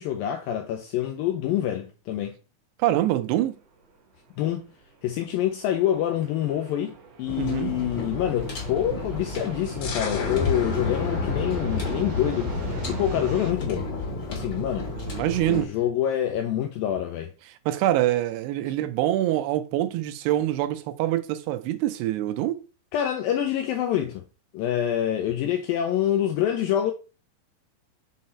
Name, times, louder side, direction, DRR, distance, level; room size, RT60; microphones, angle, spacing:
voice 1, 0.0-2.4 4.4-4.7 5.0-13.9 14.3-14.9 15.5-17.3 22.9-24.2 24.5-26.9, left 11 dB, 85° left, 2.0 m, -26 dB
voice 2, 2.8-3.6 7.4-7.8 14.9-15.7 17.7-22.6, right 13 dB, 85° right, 2.7 m, -25 dB
sound 1, 3.2-13.5, right 4 dB, 65° right, 1.7 m, -44 dB
sound 2, 7.3-15.6, left 1 dB, 40° left, 1.8 m, -34 dB
sound 3, 9.8-15.3, left 4 dB, 60° left, 2.6 m, -30 dB
6.6 x 3.8 x 4.2 m
omnidirectional pair, 4.8 m